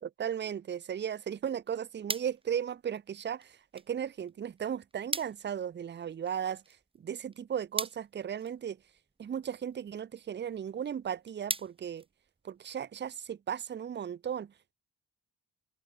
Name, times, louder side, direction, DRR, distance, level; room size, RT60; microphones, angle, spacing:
voice 1, 0.0-8.8 9.2-12.0 12.4-14.7, right 8 dB, 30° right, 0.5 m, -36 dB
sound 1, 1.4-12.8, right 3 dB, 15° right, 1.0 m, -43 dB
cardioid pair, 120°, 37 cm